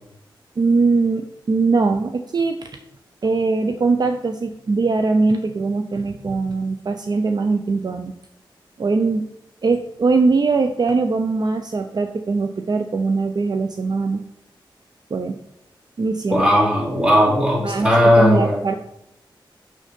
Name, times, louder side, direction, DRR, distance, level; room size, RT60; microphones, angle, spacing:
voice 1, 0.6-2.7 3.2-8.1 8.8-9.3 9.6-14.2 15.1-15.4 16.0-16.4 17.6-18.7, right 3 dB, 50° right, 6 dB, 0.6 m, -21 dB
voice 2, 16.3-18.6, equal, 15° right, -3 dB, 3.3 m, -16 dB
6.5 x 6.5 x 5.2 m, 0.79 s
cardioid pair, 75°, 9 cm